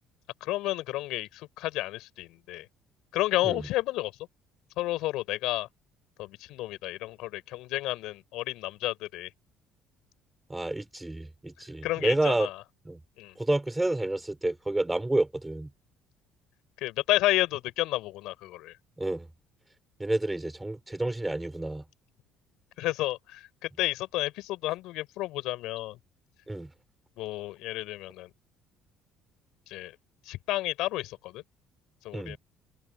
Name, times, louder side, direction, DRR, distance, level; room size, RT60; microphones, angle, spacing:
voice 1, 0.4-2.7 3.1-4.1 4.8-5.7 6.2-9.3 11.8-12.6 13.2-13.3 16.8-18.7 22.8-26.0 27.2-28.3 29.7-29.9 30.2-31.4 32.0-32.4, left 17 dB, 80° left, 4.2 m, -31 dB
voice 2, 10.5-12.5 12.8-13.0 13.4-15.7 19.0-19.3 20.0-21.8 26.5-26.7 32.1-32.4, right 2 dB, 10° right, 5.0 m, -29 dB
supercardioid pair, 90°, 0 cm